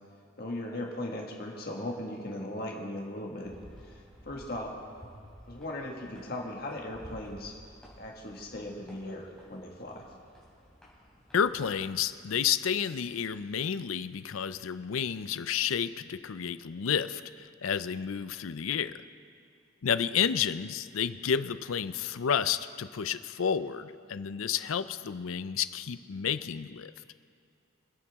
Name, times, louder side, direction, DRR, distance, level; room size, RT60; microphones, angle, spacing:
voice 1, 0.4-3.5 3.8-4.7 5.5-7.6 8.0-10.0, left 1 dB, 45° left, -1 dB, 1.7 m, -38 dB
sound 1, 3.4-12.1, equal, 5° left, 3.6 m, -54 dB
voice 2, 11.3-19.0 19.8-26.9, left 7 dB, 80° left, 13 dB, 0.5 m, -31 dB
25.5 x 8.7 x 3.6 m, 2.4 s
head